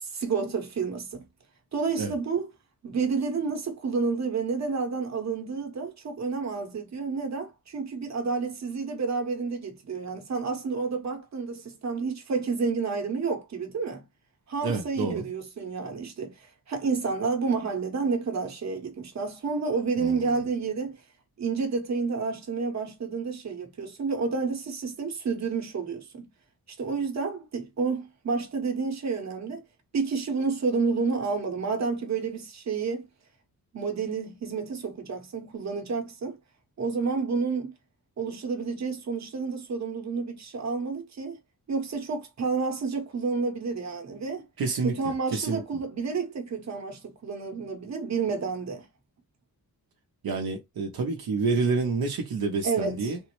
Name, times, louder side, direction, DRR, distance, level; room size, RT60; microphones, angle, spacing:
voice 1, 0.0-1.2 1.7-2.5 2.8-14.0 14.5-21.0 21.4-26.3 26.8-29.6 29.9-33.1 33.7-36.4 36.8-37.7 38.2-41.4 41.7-44.4 44.8-48.9 52.6-53.1, right 4 dB, 45° right, 1.0 m, -30 dB
voice 2, 14.6-15.3 20.0-20.4 44.6-44.9 45.3-45.6 50.2-53.2, right 4 dB, 75° right, 0.8 m, -28 dB
3.5 x 2.0 x 2.9 m
wide cardioid pair, 150°, 37 cm